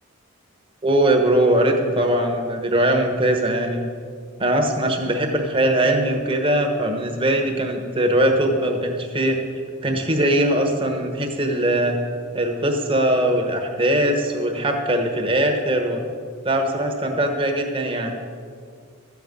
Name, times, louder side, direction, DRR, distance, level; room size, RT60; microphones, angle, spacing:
voice 1, 0.8-3.9 4.4-9.4 9.8-12.0 12.3-16.0 16.4-18.2, right 1 dB, 25° right, 3 dB, 1.2 m, -21 dB
13.5 x 8.4 x 5.2 m, 2.1 s
head